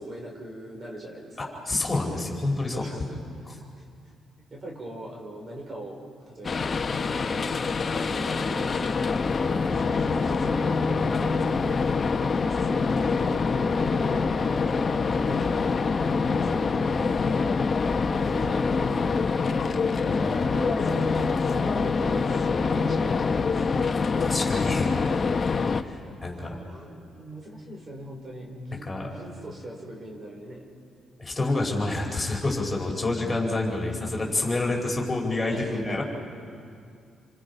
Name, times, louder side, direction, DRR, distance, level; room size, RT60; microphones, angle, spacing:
voice 1, 0.0-1.6 2.7-3.2 3.5-3.9 4.4-6.0 6.3-11.2 11.6-18.0 18.3-19.0 19.4-24.0 26.0-30.6 35.4-36.0, right 1 dB, 40° right, 0 dB, 5.5 m, -41 dB
voice 2, 1.7-2.8 20.0-20.4 24.2-24.9 25.8-26.8 28.9-29.1 31.2-36.0, left 2 dB, 20° left, -1 dB, 4.9 m, -28 dB
sound 1, 6.4-25.8, left 4 dB, 40° left, 1.1 m, -25 dB
28.5 x 26.0 x 5.5 m, 2.4 s
cardioid pair, 90°, 0 cm